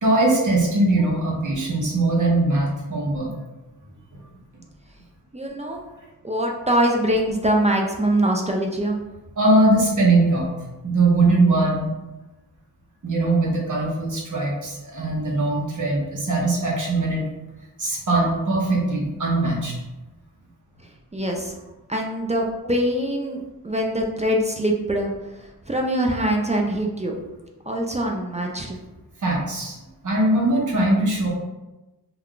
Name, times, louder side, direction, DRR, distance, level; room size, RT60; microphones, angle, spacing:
voice 1, 0.0-3.3 9.4-10.5 10.8-11.9 13.0-17.2 17.8-19.7 29.2-29.8 30.0-31.3, right 2 dB, 50° right, -3 dB, 0.8 m, -21 dB
voice 2, 5.3-5.8 6.2-9.0 20.8-21.6 21.9-27.2 27.7-28.8, right 1 dB, 20° right, 0 dB, 0.3 m, -23 dB
2.3 x 2.2 x 3.6 m, 1.0 s
wide cardioid pair, 75°, 39 cm